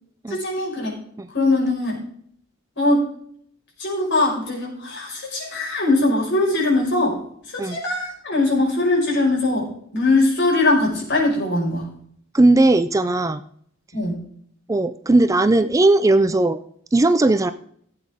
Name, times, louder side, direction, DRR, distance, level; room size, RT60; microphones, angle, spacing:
voice 1, 0.3-0.9 1.3-2.0 2.8-3.1 3.8-7.2 7.5-11.9 13.9-14.2, left 2 dB, 60° left, -3 dB, 5.3 m, -21 dB
voice 2, 12.3-13.4 14.7-16.6 16.9-17.5, right 2 dB, 15° right, 11 dB, 0.4 m, -17 dB
17.0 x 8.4 x 3.6 m, 0.64 s
head